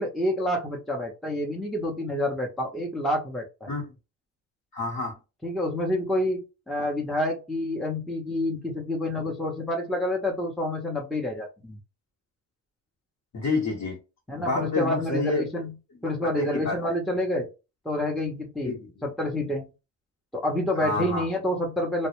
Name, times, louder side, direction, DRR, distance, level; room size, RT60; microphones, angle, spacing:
voice 1, 0.0-3.7 5.4-11.8 14.3-15.7 16.0-17.5 17.8-18.7 19.0-19.7 20.3-22.1, left 1 dB, ahead, 0 dB, 0.7 m, -28 dB
voice 2, 4.7-5.1 13.3-14.0 14.4-15.5 16.0-16.8 18.6-19.0 20.8-21.3, left 3 dB, 45° left, 0 dB, 1.0 m, -29 dB
2.1 x 2.1 x 3.0 m, 0.28 s
supercardioid pair, 65°, 37 cm